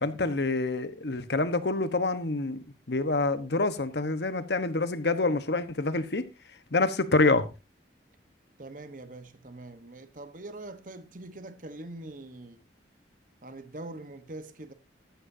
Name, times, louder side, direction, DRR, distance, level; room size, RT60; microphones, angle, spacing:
voice 1, 0.0-6.3 6.7-7.5, left 3 dB, 70° left, 1.2 m, -27 dB
voice 2, 8.6-12.6 13.4-14.7, right 2 dB, 50° right, 1.1 m, -43 dB
14.0 x 11.5 x 2.7 m
head